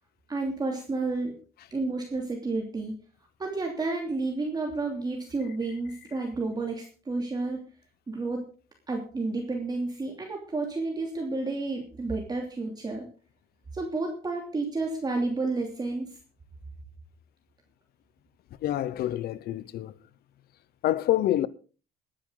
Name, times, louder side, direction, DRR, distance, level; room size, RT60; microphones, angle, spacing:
voice 1, 0.3-1.3 1.7-2.9 3.4-7.6 8.1-8.4 8.9-13.1 13.7-16.2, right 3 dB, 25° right, 3.0 m, -31 dB
voice 2, 18.6-19.9 20.8-21.5, left 13 dB, 70° left, 0.9 m, -27 dB
20.0 x 10.5 x 3.9 m
cardioid pair, 110°, 17 cm